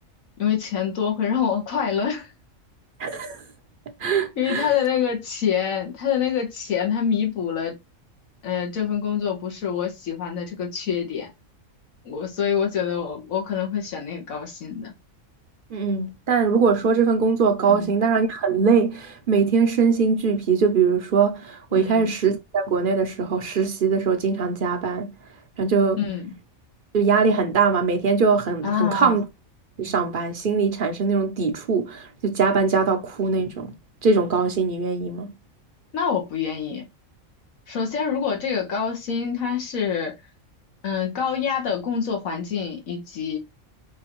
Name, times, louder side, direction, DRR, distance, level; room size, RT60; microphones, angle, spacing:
voice 1, 0.4-2.3 4.4-7.7 8.4-11.3 12.0-14.9 17.7-17.9 21.7-22.1 26.0-26.3 28.6-29.2 35.9-36.9 37.7-40.1 40.8-43.4, left 7 dB, 85° left, 1.5 m, -26 dB
voice 2, 3.0-3.4 4.0-4.7 15.7-25.1 25.6-26.0 26.9-29.2 29.8-33.7 34.0-35.3, right 5 dB, 55° right, 0.6 m, -21 dB
5.5 x 2.5 x 2.9 m
omnidirectional pair, 1.4 m